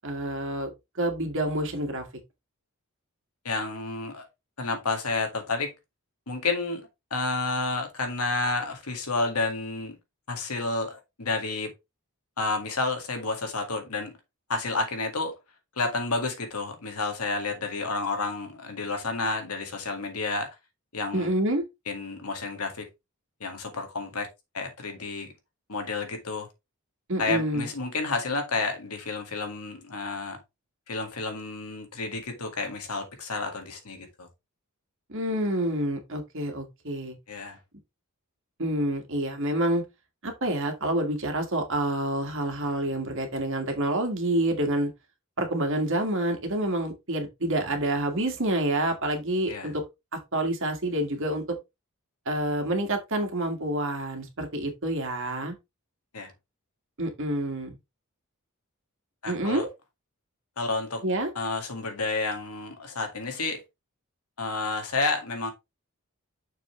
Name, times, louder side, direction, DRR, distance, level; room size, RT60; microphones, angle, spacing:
voice 1, 0.0-0.7 1.0-2.1 21.1-21.6 27.1-27.7 35.1-37.2 38.6-39.8 40.2-44.9 45.4-49.8 50.3-51.4 52.3-55.6 57.0-57.8 59.3-59.7 61.0-61.3, right 1 dB, 60° right, 1.9 m, -28 dB
voice 2, 3.4-4.3 4.6-5.7 6.3-10.0 10.3-11.7 12.4-14.1 14.5-15.3 15.8-20.5 20.9-21.3 21.9-22.9 23.4-24.3 24.5-25.3 25.7-26.5 27.2-30.4 30.9-34.3 37.3-37.6 49.5-49.7 56.1-56.3 59.2-59.7 60.6-61.0 61.4-63.6 64.4-65.5, left 3 dB, 80° left, 1.9 m, -30 dB
6.6 x 5.6 x 3.2 m
head